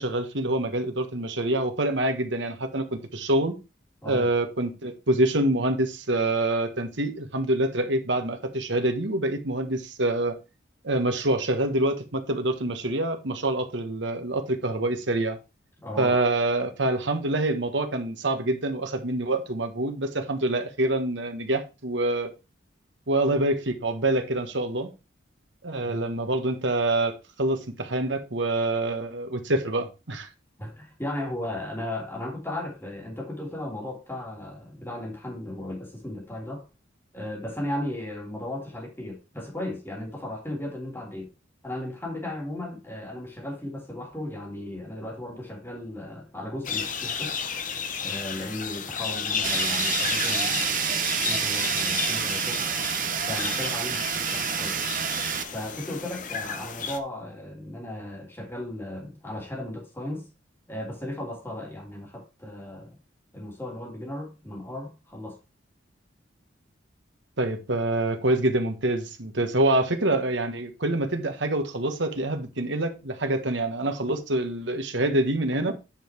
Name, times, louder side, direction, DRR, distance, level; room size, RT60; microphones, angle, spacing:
voice 1, 0.0-3.5 4.0-10.3 10.8-15.4 16.0-22.3 23.1-24.9 25.6-30.3 67.4-75.7, right 1 dB, 75° right, 1.6 m, -26 dB
voice 2, 15.8-16.2 25.8-26.0 30.6-36.7 37.1-41.3 41.6-47.4 48.0-52.7 53.2-54.8 55.5-60.3 60.7-63.0 63.3-65.4, left 1 dB, 10° left, 3.1 m, -36 dB
sound 1, 46.6-57.0, left 6 dB, 45° left, 1.0 m, -32 dB
Fire, 49.4-55.4, right 8 dB, 45° right, 0.9 m, -28 dB
9.0 x 5.5 x 4.6 m
head